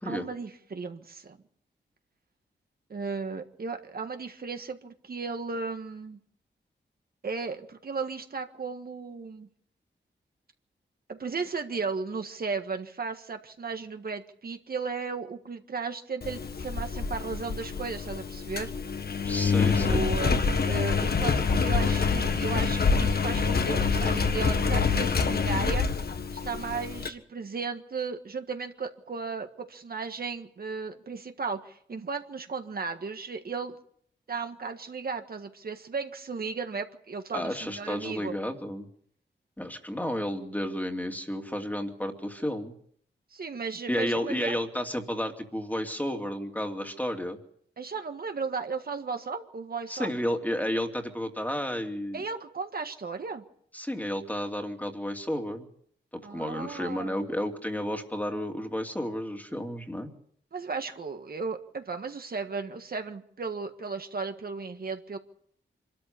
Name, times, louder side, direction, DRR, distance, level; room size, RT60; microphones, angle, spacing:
voice 1, 0.0-1.4 2.9-6.2 7.2-9.5 11.1-18.7 19.8-25.9 26.4-33.8 34.3-38.3 43.3-44.6 47.8-50.1 52.1-53.4 56.2-57.3 60.5-65.2, right 4 dB, 55° right, 6 dB, 1.7 m, -35 dB
Engine, 16.2-27.1, left 5 dB, 55° left, 1.7 m, -26 dB
voice 2, 19.2-20.0 37.3-38.9 39.6-42.7 43.9-47.4 49.9-52.2 53.7-55.7 56.1-60.1, equal, 10° left, 4 dB, 2.6 m, -32 dB
25.5 x 13.0 x 8.4 m, 0.66 s
wide cardioid pair, 95°, 19 cm